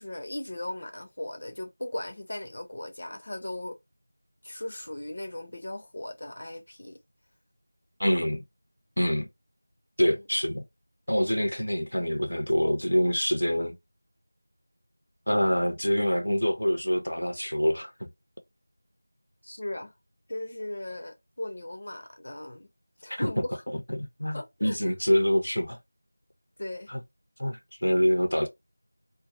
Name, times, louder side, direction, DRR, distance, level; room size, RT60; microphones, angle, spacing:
voice 1, 0.0-3.8 4.4-7.0 10.1-10.3 19.6-19.9 20.3-22.7 23.0-23.6 24.3-24.8 26.6-26.9, left 1 dB, 45° left, 0.7 m, -37 dB
voice 2, 8.0-8.4 9.0-9.3 10.0-10.6 11.1-13.8 15.3-18.1 19.5-19.6 23.2-23.3 23.9-25.8 26.9-27.0 27.4-28.5, equal, 80° left, 0.7 m, -26 dB
2.6 x 2.2 x 2.5 m
figure-of-eight pair, 175°, 0 cm